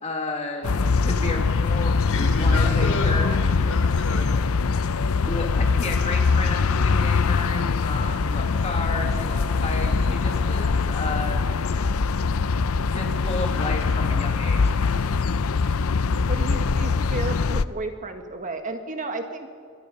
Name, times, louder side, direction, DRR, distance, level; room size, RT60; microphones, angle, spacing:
voice 1, 0.0-2.0 2.2-3.3 5.2-11.4 12.9-14.8, left 2 dB, 30° left, 2 dB, 2.4 m, -32 dB
sound 1, 0.6-17.6, left 4 dB, 90° left, 0.6 m, -22 dB
voice 2, 1.8-4.3, left 2 dB, 75° left, 2 dB, 4.7 m, -31 dB
voice 3, 16.3-19.5, right 2 dB, 35° right, 6 dB, 1.8 m, -32 dB
26.0 x 22.0 x 5.4 m, 2.1 s
head